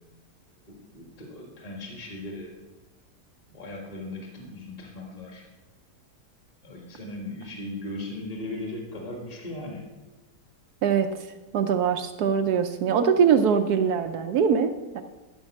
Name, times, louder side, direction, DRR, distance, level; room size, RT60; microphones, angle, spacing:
voice 1, 0.7-2.5 3.5-5.5 6.6-9.8, left 2 dB, 25° left, 0 dB, 1.7 m, -38 dB
voice 2, 11.5-15.0, right 7 dB, 70° right, 7 dB, 1.1 m, -22 dB
13.0 x 5.5 x 6.3 m, 1.1 s
omnidirectional pair, 1.8 m